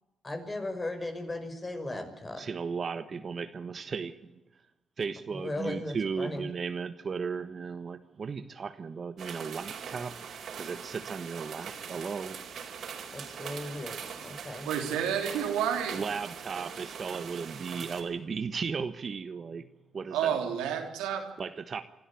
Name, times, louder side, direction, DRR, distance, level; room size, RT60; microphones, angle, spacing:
voice 1, 0.2-2.4 5.3-6.5 13.1-14.0 14.2-14.7, left 2 dB, 30° left, 6 dB, 5.7 m, -36 dB
voice 2, 2.4-4.1 5.0-10.2 10.6-12.4 15.9-19.7 19.9-20.3 21.4-21.8, right 5 dB, 50° right, 9 dB, 1.3 m, -35 dB
sound 1, 9.2-18.0, right 7 dB, 65° right, 4.7 m, -42 dB
voice 3, 14.6-16.0 20.1-21.2, right 8 dB, 85° right, 3 dB, 3.4 m, -30 dB
27.5 x 12.5 x 8.5 m, 1.0 s
supercardioid pair, 55°, 0 cm